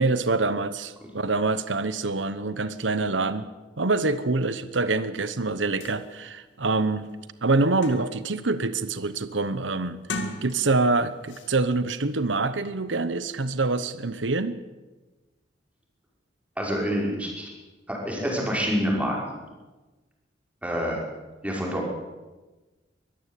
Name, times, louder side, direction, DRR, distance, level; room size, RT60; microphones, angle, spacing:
voice 1, 0.0-3.5 3.8-7.1 7.4-10.0 10.4-14.6, right 3 dB, 80° right, 13 dB, 1.0 m, -25 dB
sound 1, 5.5-5.6 5.8-6.0 6.5-6.6 7.0-8.4 8.8-9.1 9.9-10.9 11.3-11.5, left 2 dB, 85° left, 2.2 m, -37 dB
voice 2, 16.6-17.5 17.9-19.4 20.6-21.0 21.4-21.9, equal, 10° right, -2 dB, 5.6 m, -27 dB
23.0 x 14.0 x 8.5 m, 1.2 s
head